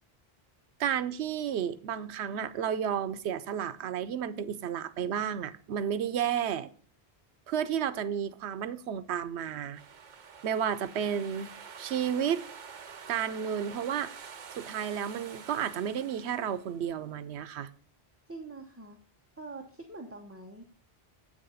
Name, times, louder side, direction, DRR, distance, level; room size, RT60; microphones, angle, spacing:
voice 1, 0.8-6.7 7.5-9.8 10.4-11.5 11.8-12.4 13.1-14.2 14.6-17.7, right 9 dB, 85° right, 0.9 m, -32 dB
sound 1, 9.8-17.0, right 6 dB, 50° right, 0.8 m, -48 dB
voice 2, 18.3-19.0 19.4-20.7, right 3 dB, 15° right, 0.8 m, -44 dB
8.3 x 6.3 x 5.5 m
omnidirectional pair, 1.1 m